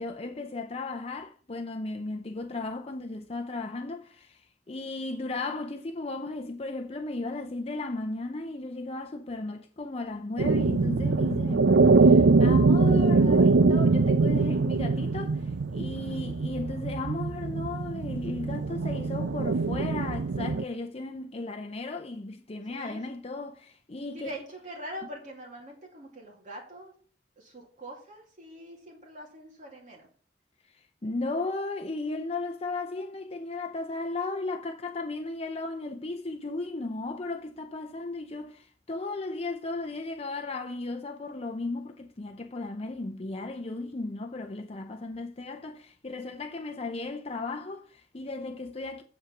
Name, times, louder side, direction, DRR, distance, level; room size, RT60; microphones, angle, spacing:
voice 1, 0.0-24.4 30.6-49.0, left 2 dB, 35° left, 0.7 m, -35 dB
sound 1, 10.4-20.6, right 3 dB, 85° right, 0.5 m, -23 dB
voice 2, 22.7-23.0 24.1-26.9 27.4-30.1, equal, 45° right, 2.6 m, -43 dB
7.9 x 7.3 x 5.8 m
head